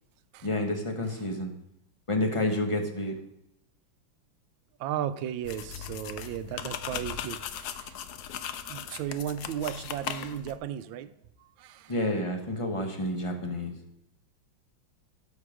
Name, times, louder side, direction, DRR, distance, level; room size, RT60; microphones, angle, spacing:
voice 1, 0.4-1.5 2.1-3.2 11.9-13.7, left 1 dB, 30° left, 3 dB, 0.6 m, -29 dB
voice 2, 4.8-8.0 8.7-11.1 11.4-11.9, right 10 dB, 80° right, 12 dB, 1.3 m, -35 dB
sound 1, 5.4-10.6, left 9 dB, 70° left, 1.0 m, -38 dB
12.5 x 4.6 x 4.9 m, 0.80 s
omnidirectional pair, 2.1 m